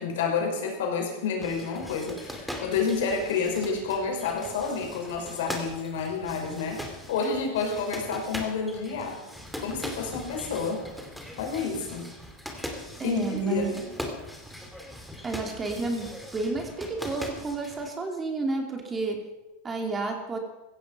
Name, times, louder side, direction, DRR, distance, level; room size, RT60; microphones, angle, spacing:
voice 1, 0.0-9.2 9.6-10.8 11.4-12.1 13.0-13.8, left 5 dB, 80° left, 2 dB, 5.5 m, -29 dB
sound 1, 1.4-17.9, left 1 dB, ahead, 2.6 m, -40 dB
voice 2, 13.0-13.8 15.2-19.3 19.6-20.4, right 3 dB, 20° right, 3 dB, 3.0 m, -31 dB
16.0 x 14.5 x 5.6 m, 1.0 s
supercardioid pair, 135°, 0 cm